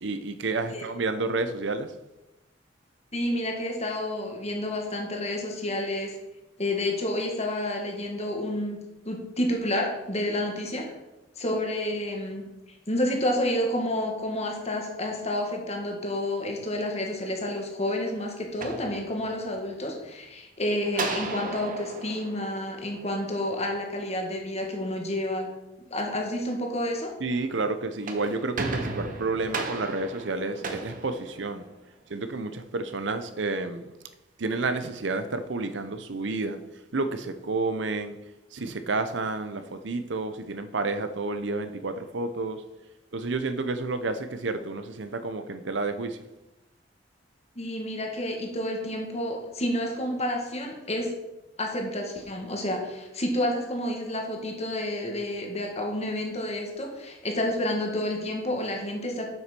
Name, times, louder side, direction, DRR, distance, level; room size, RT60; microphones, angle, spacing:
voice 1, 0.0-1.9 27.2-31.7 32.1-33.8 34.4-36.6 36.9-38.2 38.5-42.6 43.1-46.2, right 3 dB, 70° right, 10 dB, 0.7 m, -30 dB
voice 2, 3.1-6.2 6.6-10.9 11.4-12.5 12.9-25.5 25.9-27.1 47.6-51.1 51.6-59.2, left 1 dB, 35° left, 1 dB, 1.7 m, -30 dB
sound 1, 18.6-19.6 20.9-23.4 27.8-31.9, right 3 dB, 45° right, 1.1 m, -35 dB
7.7 x 5.9 x 6.0 m, 1.0 s
head